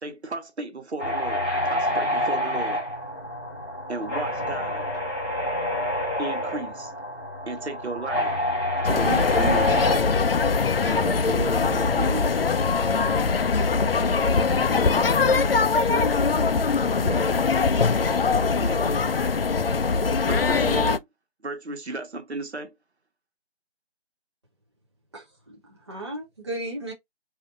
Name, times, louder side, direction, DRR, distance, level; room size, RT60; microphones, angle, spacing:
voice 1, 0.0-2.8 3.9-4.9 6.2-6.9 7.5-8.4 8.8-9.9 10.8-12.3 16.9-17.4 18.5-19.0 20.2-21.0 21.4-22.7, right 3 dB, 75° right, 1.4 m, -34 dB
sound 1, 1.0-10.0, left 1 dB, ahead, 1.5 m, -28 dB
sound 2, 8.8-21.0, left 4 dB, 60° left, 0.5 m, -22 dB
voice 2, 14.0-14.1, right 3 dB, 45° right, 1.3 m, -52 dB
voice 3, 25.1-26.9, right 1 dB, 25° right, 0.8 m, -35 dB
5.0 x 2.8 x 2.6 m
figure-of-eight pair, 170°, 33 cm